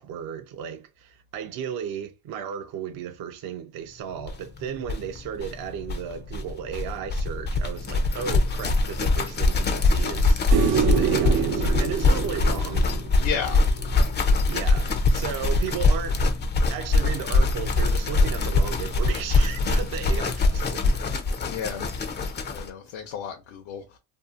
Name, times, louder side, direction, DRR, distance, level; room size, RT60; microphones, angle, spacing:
voice 1, 0.0-12.9 13.4-13.6 14.3-16.3 16.7-21.0 21.6-22.0, right 8 dB, 50° right, 0.5 m, -35 dB
sound 1, 4.3-4.4 4.6-4.7 4.8-22.7, left 2 dB, 25° left, 0.3 m, -23 dB
sound 2, 10.5-13.8 16.4-16.5, right 7 dB, 85° right, 0.8 m, -26 dB
voice 2, 13.2-13.6 21.4-24.0, left 7 dB, 80° left, 0.7 m, -33 dB
2.7 x 2.4 x 2.3 m
cardioid pair, 90°, 47 cm